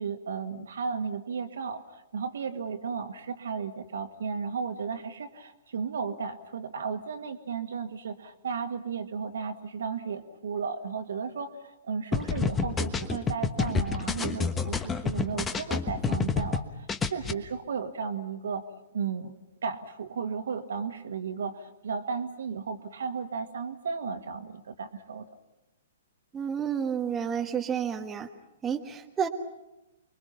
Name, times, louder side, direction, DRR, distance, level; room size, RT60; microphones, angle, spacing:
voice 1, 0.0-18.6 18.9-19.3 19.6-25.3, right 5 dB, 60° right, 6 dB, 1.9 m, -34 dB
sound 1, 12.1-16.6 16.9-17.3, left 5 dB, 15° left, 1.3 m, -28 dB
voice 2, 26.3-28.3 28.6-29.3, right 7 dB, 15° right, 3 dB, 1.4 m, -30 dB
29.5 x 22.0 x 5.8 m, 0.97 s
figure-of-eight pair, 115°, 0 cm